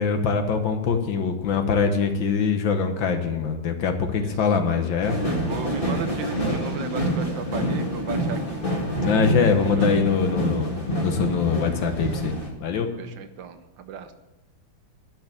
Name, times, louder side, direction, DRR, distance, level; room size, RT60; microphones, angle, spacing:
voice 1, 0.0-5.2 9.0-12.3 12.6-12.9, left 5 dB, 70° left, 6 dB, 1.8 m, -23 dB
sound 1, 5.0-12.5, equal, 25° left, 2.0 m, -27 dB
voice 2, 5.3-8.8 9.8-9.9 13.0-14.1, right 6 dB, 70° right, 9 dB, 1.4 m, -36 dB
11.5 x 6.3 x 8.5 m, 1.1 s
omnidirectional pair, 2.2 m